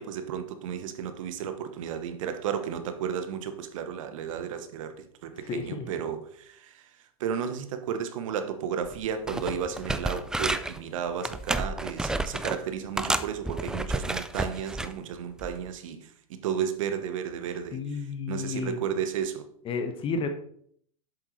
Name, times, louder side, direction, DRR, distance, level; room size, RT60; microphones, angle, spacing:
voice 1, 0.0-6.9 7.2-19.5, right 8 dB, 65° right, 9 dB, 1.1 m, -33 dB
voice 2, 5.5-5.9 17.7-18.8 19.6-20.3, left 4 dB, 30° left, 7 dB, 1.1 m, -31 dB
sound 1, 8.9-9.0 9.3-10.8 11.2-12.6 13.0-14.9 15.4-15.6, right 2 dB, 5° right, 0.3 m, -31 dB
7.9 x 7.2 x 3.2 m, 0.63 s
hypercardioid pair, 105°, 18 cm